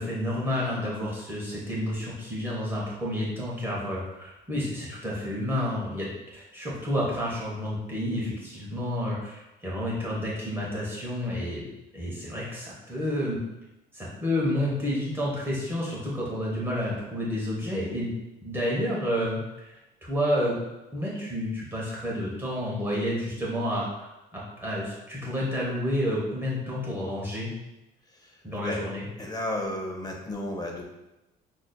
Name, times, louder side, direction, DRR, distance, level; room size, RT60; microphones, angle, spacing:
voice 1, 0.0-11.6 11.9-13.4 13.9-18.1 18.4-20.6 20.9-27.5 28.4-29.1, equal, 15° right, -6 dB, 1.0 m, -30 dB
voice 2, 29.2-30.8, left 1 dB, 25° left, 1 dB, 0.6 m, -32 dB
5.8 x 2.6 x 2.2 m, 0.96 s
cardioid pair, 110°, 17 cm